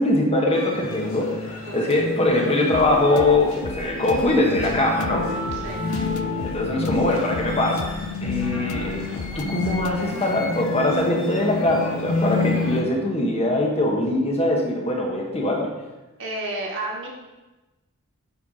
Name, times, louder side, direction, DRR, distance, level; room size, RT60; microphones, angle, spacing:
voice 1, 0.0-5.2 6.4-9.1 9.3-15.7, left 1 dB, 30° left, 0 dB, 1.3 m, -22 dB
Orchestra Pit Perspective Intrument Tinkering, 0.5-12.8, left 3 dB, 65° left, 1.4 m, -29 dB
sound 1, 2.7-10.0, left 4 dB, 85° left, 0.5 m, -36 dB
voice 2, 5.5-5.8 16.2-17.1, right 2 dB, 55° right, -2 dB, 1.8 m, -31 dB
9.4 x 4.6 x 5.0 m, 1.1 s
head